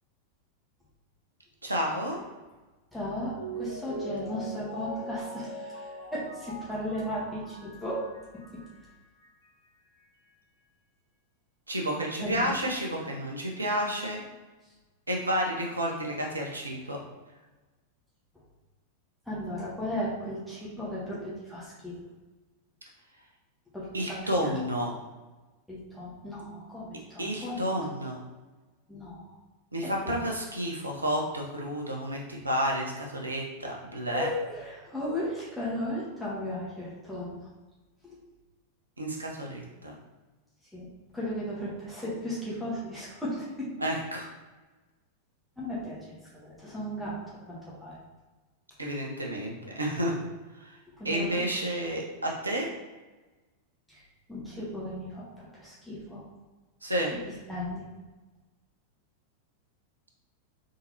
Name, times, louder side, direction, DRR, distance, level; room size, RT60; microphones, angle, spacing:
voice 1, 1.6-2.2 11.7-14.2 15.1-17.0 23.9-24.9 27.2-28.2 29.7-34.3 39.0-40.0 43.8-44.3 48.8-50.2 50.5-50.8 51.0-52.7 56.8-57.1, equal, 80° right, 0 dB, 0.9 m, -31 dB
voice 2, 2.9-8.0 12.2-12.5 14.6-14.7 19.2-22.0 23.7-24.2 24.4-24.6 25.7-27.7 28.9-29.3 29.8-30.2 34.1-37.5 38.0-38.2 40.6-40.9 41.1-43.7 45.6-48.0 50.9-51.3 51.6-51.7 53.9-56.2 57.5-57.9, left 1 dB, ahead, -9 dB, 1.4 m, -36 dB
Mallet percussion, 3.4-8.9 9.2-9.3, right 1 dB, 75° left, 1.3 m, -41 dB
4.0 x 3.8 x 2.9 m, 1.2 s
figure-of-eight pair, 90°, 0 cm